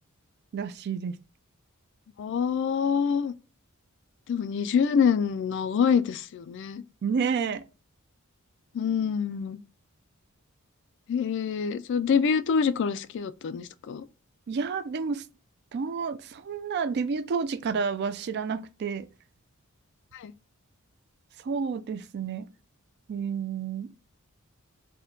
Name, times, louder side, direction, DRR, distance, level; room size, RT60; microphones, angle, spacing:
voice 1, 0.5-1.2 7.0-7.6 14.5-15.2 15.7-19.1 21.4-22.5 23.1-23.9, right 5 dB, 50° right, 0.4 m, -30 dB
voice 2, 2.2-3.3 4.3-6.8 8.7-9.6 11.1-14.0 20.1-20.3, left 6 dB, 55° left, 0.3 m, -26 dB
4.2 x 2.2 x 3.7 m
head